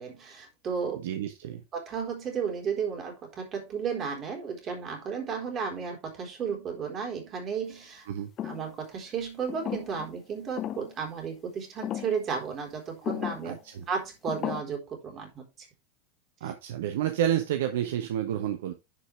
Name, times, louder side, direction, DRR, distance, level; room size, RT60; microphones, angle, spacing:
voice 1, 0.0-1.0 1.7-8.1 8.4-13.6 13.9-15.7 16.4-16.5, right 6 dB, 35° right, 3.8 m, -33 dB
voice 2, 1.0-1.6 8.1-8.3 13.4-13.8 16.4-18.7, right 10 dB, 70° right, 0.9 m, -30 dB
sound 1, 8.4-8.7 9.5-10.1 10.6-10.9 11.8-12.2 13.0-13.5 14.3-14.6, left 11 dB, 40° left, 0.7 m, -34 dB
11.0 x 5.1 x 3.3 m
hypercardioid pair, 85°, 0 cm